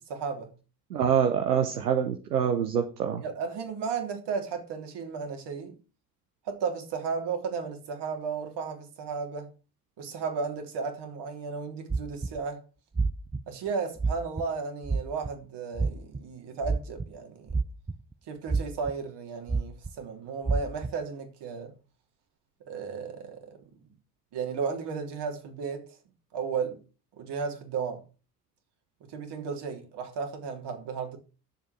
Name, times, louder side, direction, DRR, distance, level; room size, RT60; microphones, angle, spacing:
voice 1, 0.1-0.5 3.2-5.8 6.4-9.5 10.0-12.6 13.5-17.6 18.3-21.7 22.7-23.8 24.3-25.9 26.3-26.8 27.2-28.0 29.1-31.2, right 5 dB, 60° right, 3.3 m, -34 dB
voice 2, 0.9-3.2, right 8 dB, 85° right, 1.0 m, -25 dB
sound 1, 11.9-12.4 13.0-13.4 14.0-14.4 14.8-15.3 15.8-16.2 16.6-17.1 17.5-18.1 18.5-18.9 19.5-19.9 20.5-20.9, right 4 dB, 10° right, 0.7 m, -27 dB
10.5 x 7.4 x 6.0 m
figure-of-eight pair, 45°, 45 cm